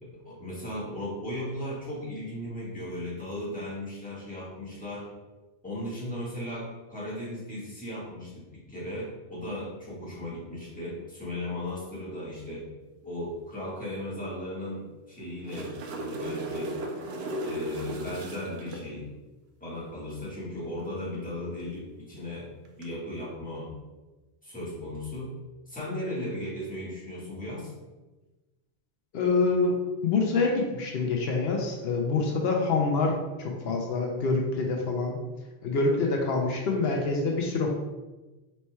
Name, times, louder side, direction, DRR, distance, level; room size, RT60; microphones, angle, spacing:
voice 1, 0.0-5.1 5.6-12.7 13.0-16.8 17.4-19.1 19.6-22.5 22.8-23.7 24.4-25.3 25.7-27.7, left 1 dB, 10° left, -8 dB, 1.4 m, -36 dB
sound 1, 15.2-18.8 22.6-22.8, right 1 dB, 75° right, 0.8 m, -35 dB
voice 2, 29.1-29.8 30.0-35.2 35.6-37.7, left 3 dB, 75° left, 0 dB, 0.8 m, -26 dB
4.4 x 4.2 x 2.2 m, 1.1 s
omnidirectional pair, 1.1 m